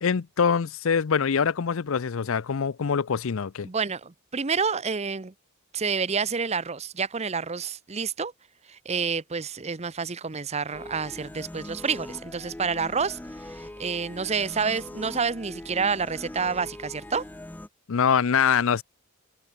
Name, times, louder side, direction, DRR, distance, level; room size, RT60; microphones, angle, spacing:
voice 1, 0.0-3.7 17.9-18.8, left 6 dB, 65° left, 0.5 m, -24 dB
voice 2, 3.6-5.3 5.7-8.3 8.7-17.2, right 5 dB, 30° right, 0.8 m, -29 dB
sound 1, 10.7-17.7, left 1 dB, 10° left, 0.4 m, -41 dB
head